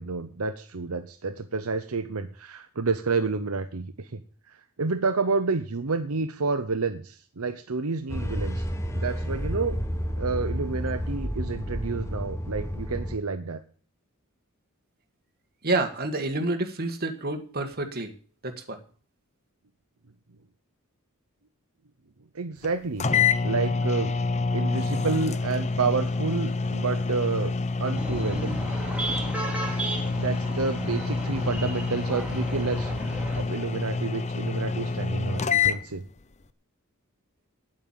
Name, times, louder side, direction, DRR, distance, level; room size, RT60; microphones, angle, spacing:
voice 1, 0.0-4.2 4.5-8.7 8.9-9.8 10.2-13.6 22.3-23.1 23.4-24.2 24.5-27.5 27.8-28.6 30.2-36.0, right 4 dB, 75° right, 8 dB, 0.9 m, -29 dB
sound 1, 8.1-13.2, equal, 15° left, 1.1 m, -31 dB
voice 2, 15.6-18.1 18.4-18.8, right 2 dB, 45° right, 5 dB, 1.7 m, -28 dB
sound 2, 22.6-22.7 23.0-35.8, left 4 dB, 30° left, 0.6 m, -27 dB
sound 3, 27.9-33.4, right 1 dB, 5° right, 2.6 m, -34 dB
9.1 x 8.7 x 8.9 m, 0.43 s
head